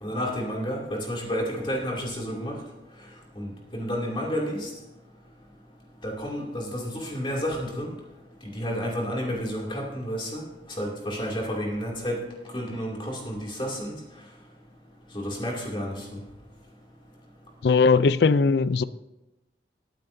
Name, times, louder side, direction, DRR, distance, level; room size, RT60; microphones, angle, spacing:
voice 1, 0.0-2.6 3.4-4.7 6.0-7.9 8.4-10.4 10.8-12.2 12.5-14.0 15.1-16.2, equal, 30° left, -2 dB, 2.7 m, -31 dB
voice 2, 17.6-18.8, left 4 dB, 65° left, 16 dB, 0.4 m, -19 dB
21.0 x 9.0 x 2.7 m, 0.98 s
head